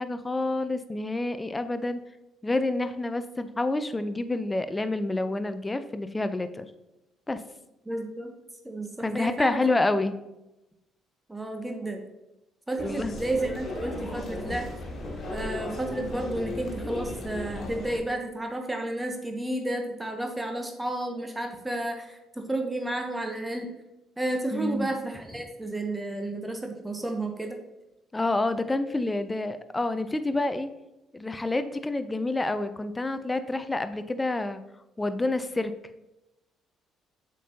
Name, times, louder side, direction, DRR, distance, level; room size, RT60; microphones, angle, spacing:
voice 1, 0.0-2.0 2.4-6.7 7.3-7.4 9.0-10.2 12.8-13.1 24.5-24.9 28.1-30.7 31.1-34.6 35.0-35.7, left 2 dB, 20° left, 11 dB, 0.5 m, -28 dB
voice 2, 7.9-8.3 8.6-9.6 11.3-12.0 12.7-14.7 15.3-23.7 24.2-27.6, right 1 dB, 15° right, 4 dB, 0.9 m, -32 dB
sound 1, 12.8-18.0, left 1 dB, 45° left, 1.7 m, -36 dB
7.4 x 5.2 x 2.8 m, 0.94 s
figure-of-eight pair, 50°, 0 cm